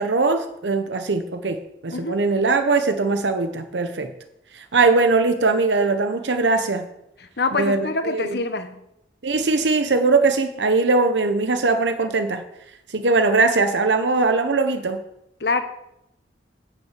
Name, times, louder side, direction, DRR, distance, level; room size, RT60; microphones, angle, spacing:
voice 1, 0.0-4.1 4.6-6.9 7.6-8.4 9.2-12.4 12.9-15.0, right 3 dB, 80° right, 0.9 m, -20 dB
voice 2, 7.4-8.8 15.4-15.6, left 3 dB, 65° left, 1.1 m, -25 dB
10.0 x 6.1 x 8.3 m
head